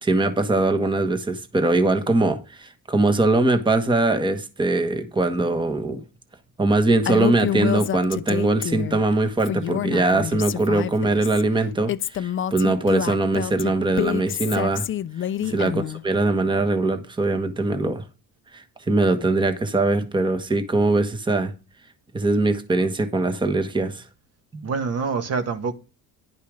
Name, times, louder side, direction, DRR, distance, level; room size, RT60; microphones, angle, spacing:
voice 1, 0.0-6.0 6.6-14.9 15.5-18.0 18.5-21.5 22.1-24.0 24.5-24.6, right 2 dB, 15° right, 1.2 m, -22 dB
Female speech woman speaking, 7.1-9.0 9.4-11.4 11.9-16.0, left 10 dB, 35° left, 0.5 m, -27 dB
voice 2, 24.6-25.7, right 5 dB, 45° right, 1.6 m, -26 dB
10.5 x 5.5 x 5.0 m
cardioid pair, 120°, 36 cm